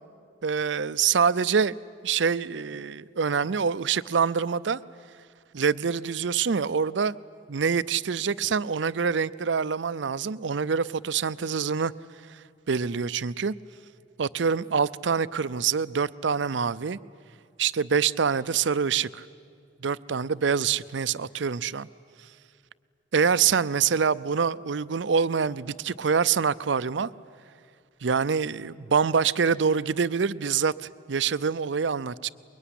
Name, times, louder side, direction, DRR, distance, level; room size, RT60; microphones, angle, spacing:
voice 1, 0.4-1.7 2.0-4.8 5.5-7.2 7.5-11.9 12.7-13.5 14.2-17.0 17.6-19.2 19.8-21.9 23.1-27.1 28.0-32.3, right 6 dB, 70° right, 16 dB, 0.5 m, -25 dB
24.5 x 22.0 x 10.0 m, 2.3 s
head